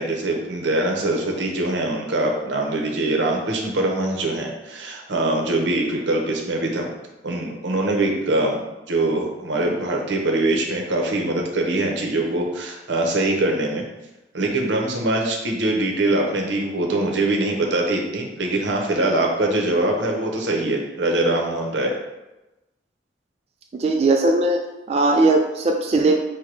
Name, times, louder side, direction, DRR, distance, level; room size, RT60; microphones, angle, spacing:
voice 1, 0.0-6.9 7.2-8.6 8.9-13.8 14.3-22.0, right 2 dB, 80° right, 1 dB, 0.9 m, -23 dB
voice 2, 23.7-24.6 24.9-26.2, right 2 dB, 35° right, 2 dB, 0.3 m, -18 dB
4.5 x 2.2 x 4.6 m, 1.0 s
head